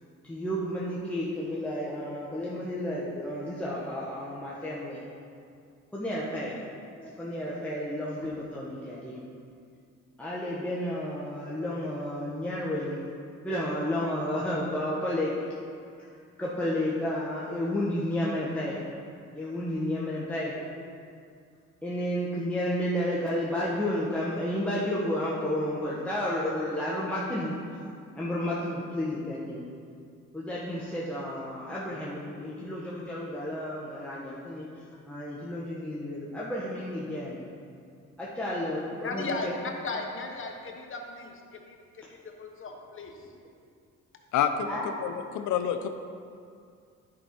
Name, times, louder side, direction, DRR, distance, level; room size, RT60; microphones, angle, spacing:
voice 1, 0.2-5.0 5.9-6.6 7.0-9.2 10.2-13.0 13.4-15.3 16.4-18.8 19.3-20.7 21.8-27.6 28.1-29.6 30.3-34.6 35.1-37.4 38.2-39.3 44.6-44.9, left 1 dB, 5° left, -7 dB, 1.3 m, -31 dB
voice 2, 39.0-43.1, left 3 dB, 45° left, 2 dB, 1.2 m, -36 dB
voice 3, 44.3-45.9, left 8 dB, 80° left, 8 dB, 0.7 m, -28 dB
10.5 x 5.5 x 4.4 m, 2.3 s
cardioid pair, 90°, 30 cm